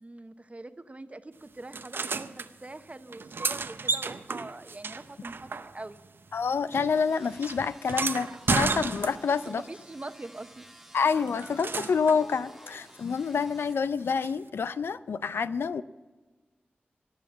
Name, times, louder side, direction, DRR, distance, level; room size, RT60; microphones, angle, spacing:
voice 1, 0.0-5.5 5.7-6.0 9.5-10.7, right 2 dB, 35° right, 0.9 m, -43 dB
sound 1, 1.7-2.5 3.1-6.1 6.3-9.5 11.0-12.2 14.2-14.3, right 4 dB, 70° right, 0.7 m, -32 dB
voice 2, 6.3-9.6 10.9-15.8, left 5 dB, 85° left, 0.5 m, -27 dB
sound 2, 6.7-13.7, equal, 5° right, 1.7 m, -55 dB
sound 3, 7.9-9.2 11.1-12.9, left 1 dB, 60° left, 3.4 m, -46 dB
18.0 x 7.3 x 7.4 m
cardioid pair, 45°, 4 cm